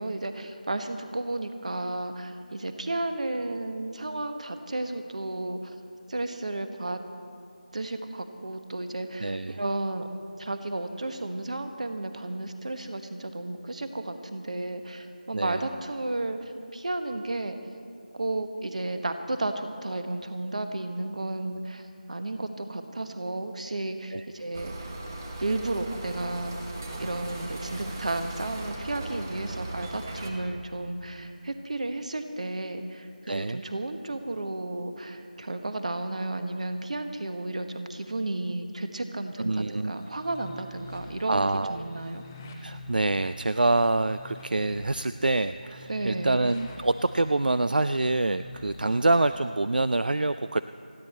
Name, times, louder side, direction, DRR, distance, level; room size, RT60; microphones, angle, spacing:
voice 1, 0.0-5.8 6.1-7.0 7.7-10.1 10.4-16.4 16.7-17.6 18.1-24.7 25.4-26.6 27.0-42.2 45.9-46.3, right 2 dB, 50° right, 7 dB, 1.2 m, -33 dB
voice 2, 9.2-9.6 15.3-15.6 24.1-24.2 33.3-33.6 39.4-40.0 41.3-41.8 42.6-50.6, right 2 dB, 75° right, 12 dB, 0.4 m, -26 dB
sound 1, 24.5-30.3, right 1 dB, 20° right, 1.1 m, -38 dB
sound 2, 39.9-49.4, left 1 dB, 10° left, 0.7 m, -46 dB
30.0 x 10.0 x 4.3 m, 2.3 s
figure-of-eight pair, 170°, 5 cm